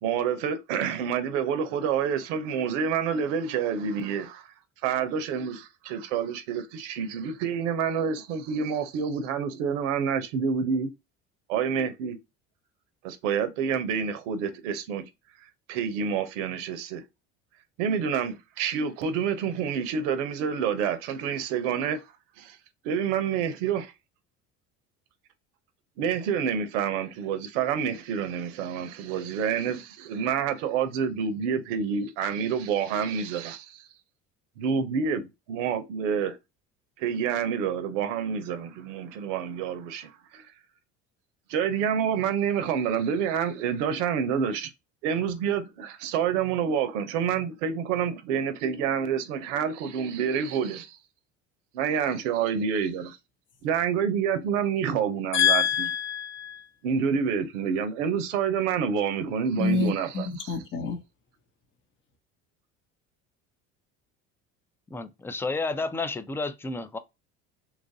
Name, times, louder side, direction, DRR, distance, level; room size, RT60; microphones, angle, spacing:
voice 1, 0.0-4.5 4.8-10.9 11.5-12.2 13.0-15.1 15.7-17.0 17.8-22.0 22.4-22.6 22.8-23.9 26.0-33.9 34.6-35.2 35.5-36.4 37.0-40.5 41.5-44.7 45.0-51.0 51.7-53.2 53.6-55.9 56.8-60.6, right 7 dB, 85° right, 0.7 m, -28 dB
voice 2, 55.3-56.7 59.6-61.0, left 7 dB, 35° left, 0.8 m, -26 dB
voice 3, 64.9-67.0, left 3 dB, 5° left, 0.3 m, -31 dB
2.9 x 2.4 x 2.6 m
hypercardioid pair, 75°, 36 cm